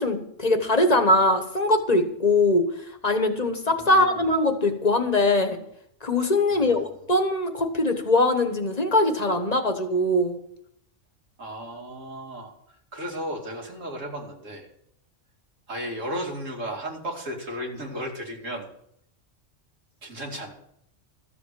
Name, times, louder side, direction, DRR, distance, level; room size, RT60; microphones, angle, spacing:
voice 1, 0.0-2.7 3.0-5.6 6.0-10.4, left 2 dB, 35° left, 7 dB, 1.4 m, -22 dB
voice 2, 3.8-4.2 6.5-6.9 11.4-14.7 15.7-18.7 20.0-20.5, equal, 90° right, 0 dB, 3.0 m, -35 dB
14.0 x 7.7 x 7.6 m, 0.73 s
omnidirectional pair, 1.3 m